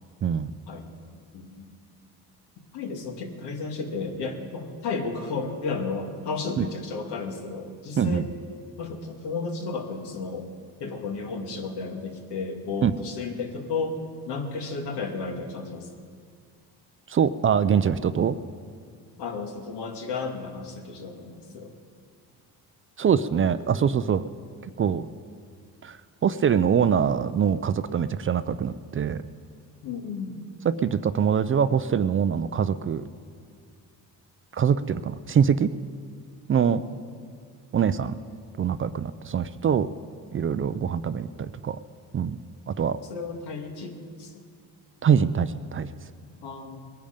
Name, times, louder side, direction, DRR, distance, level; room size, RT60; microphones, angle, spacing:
voice 1, 1.3-1.8 2.7-8.3 8.8-10.5 10.8-14.0 14.3-15.9 19.2-21.7 29.8-30.5 36.7-37.0 43.0-44.3 46.4-46.9, left 4 dB, 75° left, 3 dB, 2.2 m, -33 dB
voice 2, 8.0-8.3 12.8-12.9 17.1-18.4 23.0-24.2 24.6-25.1 25.8-29.2 30.7-33.1 34.5-35.7 36.5-36.8 37.7-38.2 38.6-39.9 40.3-41.8 42.1-42.4 42.7-43.0 45.0-45.9, right 7 dB, 30° right, 13 dB, 0.5 m, -24 dB
21.0 x 10.5 x 5.1 m, 2.1 s
cardioid pair, 100°, 40 cm